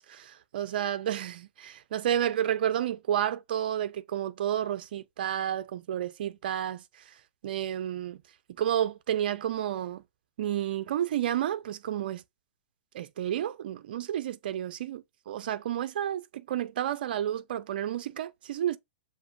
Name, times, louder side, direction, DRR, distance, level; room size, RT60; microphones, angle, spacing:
voice 1, 0.0-7.2 7.4-8.2 8.6-10.0 10.4-12.2 12.9-18.8, right 11 dB, 50° right, 0.5 m, -31 dB
6.8 x 2.6 x 2.3 m
figure-of-eight pair, 105°, 6 cm